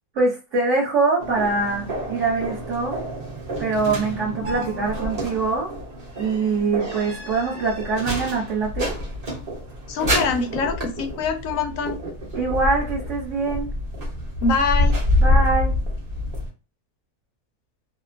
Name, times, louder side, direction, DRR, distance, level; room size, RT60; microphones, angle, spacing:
voice 1, 0.1-3.0 3.6-5.7 6.2-8.9 12.3-13.7 15.2-15.7, right 3 dB, 55° right, -4 dB, 1.1 m, -23 dB
sound 1, 1.2-16.5, left 1 dB, 35° right, 0.8 m, -27 dB
voice 2, 9.9-12.0 14.4-15.0, left 4 dB, 70° left, 5 dB, 0.9 m, -24 dB
2.8 x 2.0 x 2.5 m, 0.31 s
omnidirectional pair, 1.6 m